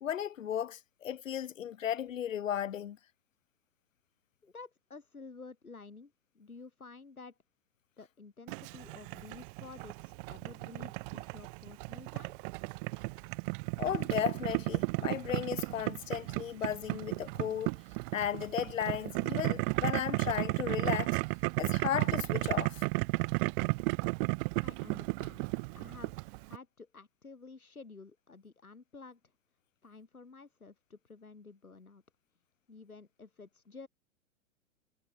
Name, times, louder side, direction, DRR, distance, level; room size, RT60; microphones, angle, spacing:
voice 1, 0.0-3.0 13.8-17.7 18.1-21.2 21.6-22.8, left 10 dB, 65° left, 2.5 m, -35 dB
voice 2, 4.4-7.4 8.0-12.4 24.6-25.4 25.7-29.2 29.8-32.0 32.7-33.9, left 4 dB, 85° left, 4.0 m, -51 dB
Boiling, 8.5-26.6, right 30 dB, 40° right, 1.9 m, -34 dB
figure-of-eight pair, 110°, 42 cm